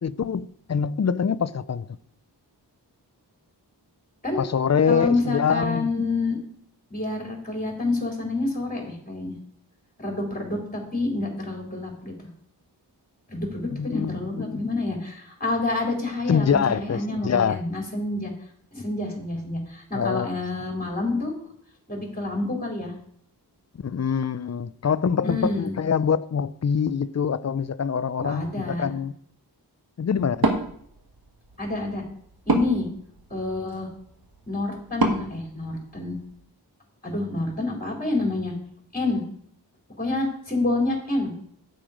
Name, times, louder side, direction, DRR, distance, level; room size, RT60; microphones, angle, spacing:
voice 1, 0.0-1.9 4.4-5.9 13.7-14.6 16.3-17.6 19.9-20.3 23.8-29.1 30.0-30.5, left 7 dB, 40° left, 0.5 m, -24 dB
voice 2, 4.9-6.4 6.9-9.4 10.0-12.1 13.3-18.3 18.7-21.3 21.9-22.9 25.2-25.8 28.2-28.9 31.6-32.0 32.5-32.9 33.3-33.9 34.5-36.1 37.0-38.5 38.9-39.2 40.0-41.3, left 2 dB, 20° left, 3.7 m, -28 dB
Wood, 30.3-36.4, right 3 dB, 55° right, 1.6 m, -30 dB
8.6 x 7.8 x 5.1 m
wide cardioid pair, 45°, 42 cm